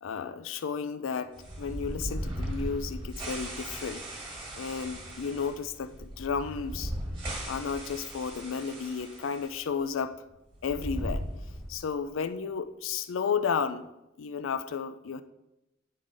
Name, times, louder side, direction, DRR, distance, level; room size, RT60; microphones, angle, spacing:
voice 1, 0.0-4.1 4.5-6.9 7.5-10.2 10.6-11.2 11.7-13.9 14.2-15.2, left 6 dB, 85° left, 11 dB, 0.4 m, -33 dB
sound 1, 1.4-9.6 9.8-9.9 10.5-11.9, right 1 dB, 25° right, 1.6 m, -37 dB
9.4 x 3.9 x 4.9 m, 0.94 s
head